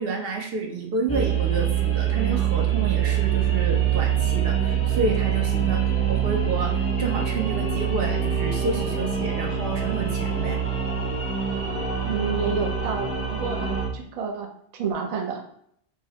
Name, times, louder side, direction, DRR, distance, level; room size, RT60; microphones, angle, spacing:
voice 1, 0.0-10.6, right 3 dB, 70° right, 3 dB, 0.8 m, -30 dB
sound 1, 1.1-13.9, right 8 dB, 15° left, 0.6 m, -24 dB
voice 2, 12.0-15.4, right 5 dB, 50° right, 3 dB, 0.5 m, -30 dB
4.6 x 2.1 x 2.8 m, 0.69 s
omnidirectional pair, 1.0 m